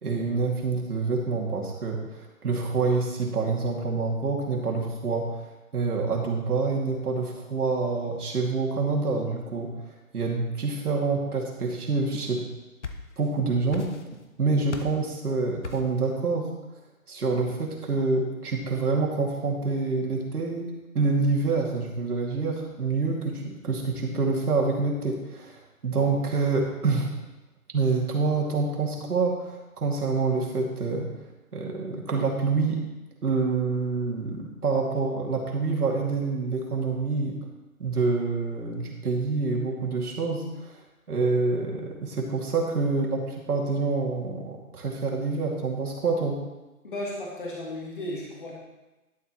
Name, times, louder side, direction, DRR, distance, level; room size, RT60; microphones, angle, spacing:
voice 1, 0.0-5.4 5.7-9.7 10.1-12.5 13.2-13.9 14.4-16.5 17.1-27.1 27.7-31.1 31.5-32.8 33.2-37.4 37.8-40.8 41.1-46.4, right 4 dB, 85° right, -1 dB, 2.5 m, -27 dB
sound 1, 12.4-13.4 13.7-14.3 14.7-15.1 15.6-16.0, left 5 dB, 50° left, 0.9 m, -38 dB
voice 2, 46.8-48.6, left 1 dB, 35° left, -3 dB, 1.6 m, -35 dB
11.0 x 7.2 x 3.1 m, 1.1 s
hypercardioid pair, 175°, 44 cm